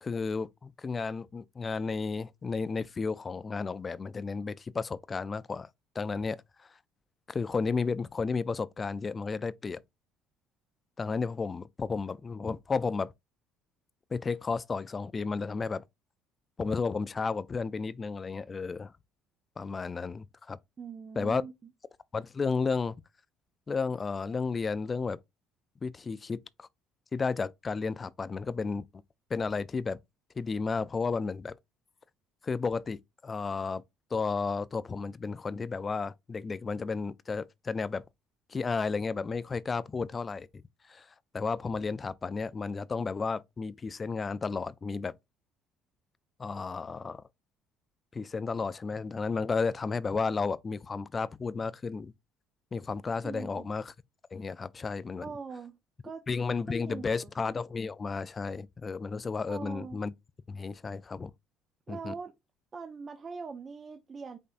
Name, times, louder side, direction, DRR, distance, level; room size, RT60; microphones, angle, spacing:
voice 1, 0.0-5.7 6.0-6.7 7.3-9.8 11.0-13.1 14.1-15.8 16.6-18.9 19.6-20.6 21.2-21.4 22.1-23.0 23.7-25.2 25.8-26.7 27.1-28.8 29.3-30.0 30.4-31.5 32.4-33.8 34.1-38.0 38.5-40.6 40.9-45.1 46.4-47.2 48.1-52.1 52.7-53.9 54.3-55.3 56.3-60.1 60.5-61.3 61.9-62.1, left 4 dB, 30° left, 0.4 m, -33 dB
voice 2, 20.8-21.5 53.2-53.7 55.2-55.8 56.0-56.2 56.9-57.3 59.5-60.0 61.9-62.3 62.7-64.4, right 5 dB, 35° right, 0.6 m, -42 dB
5.4 x 3.7 x 2.5 m
cardioid pair, 95°, 0 cm